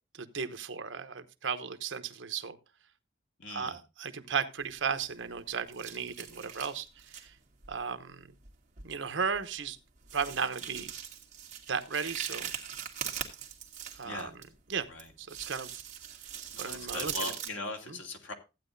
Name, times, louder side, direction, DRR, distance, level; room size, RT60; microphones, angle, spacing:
voice 1, 0.1-2.6 3.5-6.9 7.2-7.3 7.7-8.3 8.8-9.8 10.1-10.9 11.7-12.5 14.0-14.2 14.7-14.9 15.2-15.8 16.6-17.1, right 6 dB, 80° right, 0.9 m, -35 dB
voice 2, 3.4-3.8 14.0-14.3 14.9-15.1 16.5-18.3, left 3 dB, 90° left, 2.3 m, -40 dB
sound 1, 4.6-5.4 5.7-7.3 7.6-7.8 8.5-8.6 8.8-9.0 9.3-9.4 10.0-14.4 15.0-17.5, right 8 dB, 40° right, 1.8 m, -41 dB
14.5 x 9.2 x 2.6 m
head